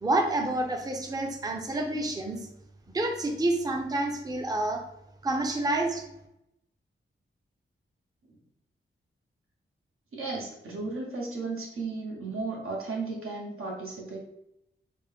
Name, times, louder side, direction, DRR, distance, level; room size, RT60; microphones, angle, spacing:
voice 1, 0.0-2.5 2.9-4.8 5.2-6.0, right 2 dB, 20° right, 3 dB, 0.5 m, -28 dB
voice 2, 10.1-14.2, right 3 dB, 80° right, -1 dB, 1.0 m, -35 dB
4.1 x 2.1 x 3.4 m, 0.82 s
wide cardioid pair, 90°, 21 cm